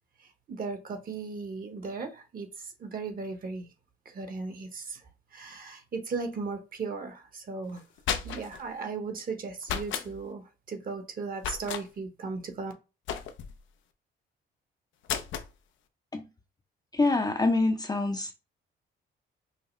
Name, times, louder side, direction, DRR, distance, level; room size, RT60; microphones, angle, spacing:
voice 1, 0.2-3.7 4.0-5.0 5.3-7.8 8.1-12.7, right 4 dB, 45° right, 1.1 m, -37 dB
sound 1, 7.8-8.6 9.6-10.1 11.4-11.8 13.1-13.6 15.0-15.5, left 8 dB, 75° left, 0.6 m, -33 dB
voice 2, 16.9-18.3, left 2 dB, 20° left, 0.6 m, -25 dB
5.5 x 2.1 x 3.2 m
cardioid pair, 90°, 20 cm